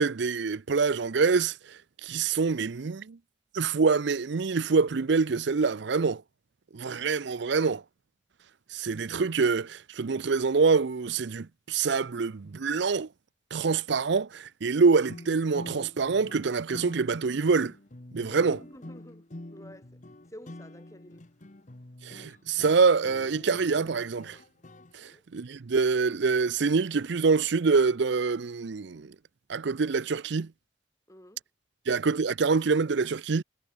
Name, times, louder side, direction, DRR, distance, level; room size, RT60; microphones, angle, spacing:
voice 1, 0.0-3.2 3.5-6.2 6.7-7.8 8.7-13.1 13.5-17.7 18.1-18.6 22.0-24.4 24.9-29.1 29.5-30.5 31.9-33.4, right 4 dB, 60° right, 0.5 m, -25 dB
sound 1, 15.1-24.9, left 1 dB, 40° left, 1.2 m, -46 dB
voice 2, 18.3-19.3 19.5-20.0 20.3-21.3 25.0-25.3 31.1-31.4, equal, 15° left, 7.1 m, -49 dB
head